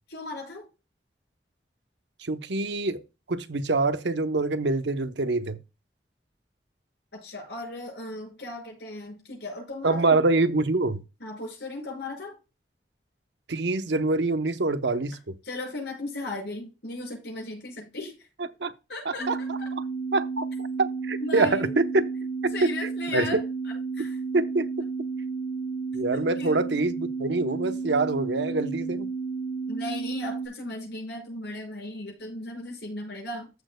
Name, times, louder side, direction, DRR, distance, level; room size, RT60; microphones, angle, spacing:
voice 1, 0.1-0.6 7.1-10.1 11.2-12.3 15.4-18.1 18.9-19.7 21.2-21.7 22.5-23.4 24.0-24.2 26.1-26.6 29.7-33.5, left 2 dB, 75° left, 5.6 m, -36 dB
voice 2, 2.2-3.0 3.3-5.6 9.8-11.0 13.5-15.4 18.6-18.7 19.0-19.6 20.1-22.1 22.4-22.7 23.1-23.4 24.3-24.7 25.9-29.1, right 3 dB, 80° right, 0.8 m, -25 dB
sound 1, 19.2-30.5, right 4 dB, 35° left, 2.3 m, -32 dB
14.0 x 6.6 x 2.2 m
head